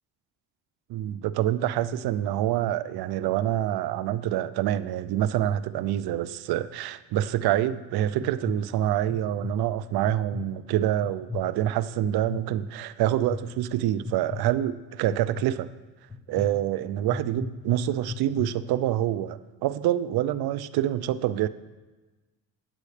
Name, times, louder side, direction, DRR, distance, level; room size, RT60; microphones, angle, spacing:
voice 1, 0.9-15.7 16.3-21.5, right 12 dB, 65° right, 15 dB, 0.6 m, -26 dB
sound 1, 8.1-8.5 9.1-9.5 10.0-10.5 11.0-11.4 12.0-12.4 13.0-13.4 14.0-14.4 15.1-15.4 16.1-16.4 17.1-17.4 18.0-18.4, left 4 dB, 20° left, 3.1 m, -35 dB
17.5 x 7.6 x 3.3 m, 1.2 s
supercardioid pair, 70°, 40 cm